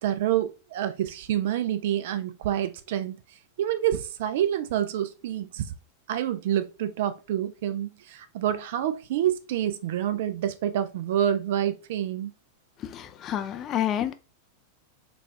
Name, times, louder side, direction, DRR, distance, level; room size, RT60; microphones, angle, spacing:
voice 1, 0.0-3.1 3.6-5.7 6.1-12.3, right 11 dB, 55° right, 0.4 m, -27 dB
voice 2, 12.8-14.1, left 10 dB, 30° left, 0.3 m, -29 dB
4.0 x 2.3 x 2.6 m
figure-of-eight pair, 90°, 0 cm